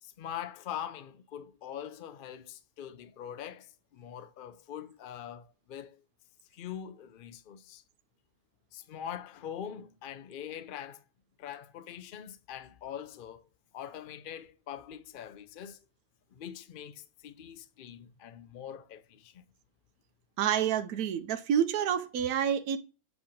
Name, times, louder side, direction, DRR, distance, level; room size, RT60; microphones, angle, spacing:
voice 1, 0.0-6.0 6.5-7.8 8.7-11.0 11.4-13.4 13.7-15.8 16.3-19.4, left 9 dB, 65° left, 0.5 m, -43 dB
voice 2, 20.4-22.8, right 9 dB, 85° right, 1.2 m, -28 dB
8.0 x 3.4 x 5.2 m
omnidirectional pair, 1.5 m